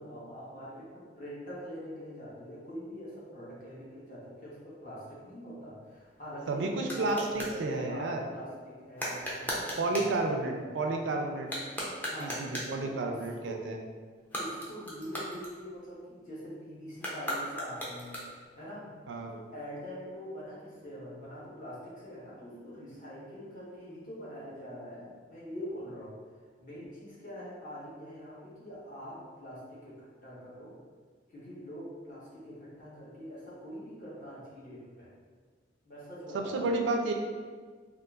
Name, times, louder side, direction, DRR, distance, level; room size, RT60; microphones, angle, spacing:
voice 1, 0.0-11.0 12.1-12.4 12.8-13.6 14.4-18.2 18.6-18.9 19.3-30.7 31.3-35.1 35.8-36.7, equal, 45° left, -8 dB, 1.0 m, -44 dB
sound 1, 5.8-7.6 8.9-10.2 11.4-12.8 14.2-16.0 16.9-18.6, equal, 10° left, 0.4 m, -38 dB
voice 2, 6.5-8.2 9.8-11.5 12.2-13.8 19.1-19.3 36.3-37.1, right 2 dB, 75° right, 3 dB, 0.4 m, -31 dB
3.7 x 2.4 x 2.3 m, 1.5 s
head